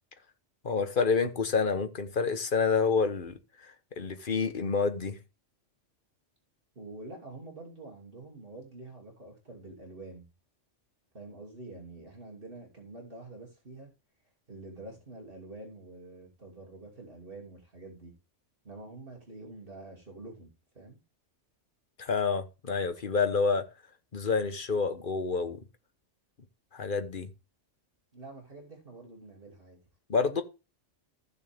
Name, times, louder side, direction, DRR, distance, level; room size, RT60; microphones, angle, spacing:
voice 1, 0.6-3.4 4.0-5.2 22.0-23.7 24.1-25.6 26.7-27.3 30.1-30.4, left 5 dB, 45° left, 1.3 m, -28 dB
voice 2, 6.7-10.2 11.1-13.9 14.5-18.1 18.6-21.0 28.1-29.8, right 2 dB, 45° right, 3.0 m, -47 dB
15.0 x 6.8 x 3.6 m
omnidirectional pair, 1.3 m